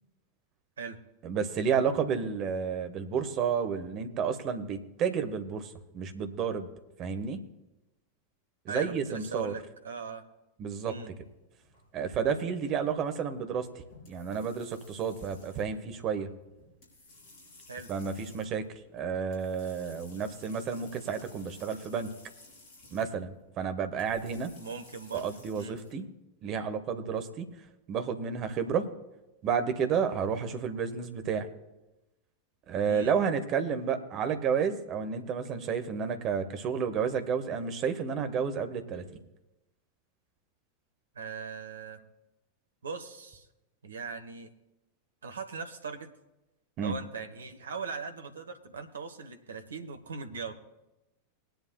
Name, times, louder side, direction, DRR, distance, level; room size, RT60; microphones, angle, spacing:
voice 1, 1.2-6.7 7.0-7.4 8.6-9.5 10.6-11.0 11.9-13.7 14.1-16.3 17.9-18.7 18.9-22.1 22.9-24.5 25.1-26.1 26.4-27.5 27.9-28.9 29.4-31.5 32.7-39.0 46.8-46.9, right 6 dB, 35° right, 9 dB, 1.1 m, -31 dB
voice 2, 8.7-10.2 10.8-11.1 17.7-17.9 24.6-25.7 32.9-33.1 41.1-42.0 42.8-43.5 43.8-44.5 45.2-46.1 46.8-50.5, right 5 dB, 70° right, 8 dB, 0.9 m, -40 dB
sound 1, 11.1-25.9, left 2 dB, 45° left, 4.9 m, -56 dB
20.5 x 10.5 x 2.2 m, 0.98 s
figure-of-eight pair, 90°, 0 cm